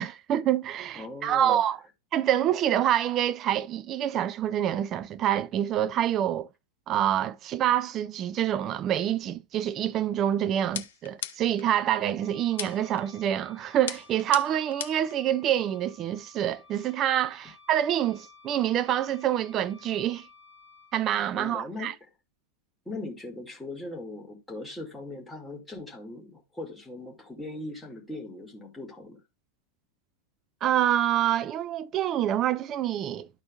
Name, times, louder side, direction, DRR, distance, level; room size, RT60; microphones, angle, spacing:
voice 1, 0.0-1.8 2.1-6.5 6.9-20.3 20.9-21.9 30.6-33.3, right 11 dB, 30° right, 0.4 m, -26 dB
voice 2, 1.0-1.6 21.3-21.9 22.9-29.2, left 2 dB, 5° left, 2.0 m, -39 dB
sound 1, 10.7-11.7 12.6-13.0 13.9-15.1, left 9 dB, 60° left, 0.5 m, -37 dB
Wind instrument woodwind instrument, 12.2-21.0, left 5 dB, 65° right, 2.5 m, -55 dB
13.0 x 4.3 x 2.3 m
figure-of-eight pair, 90°, 0 cm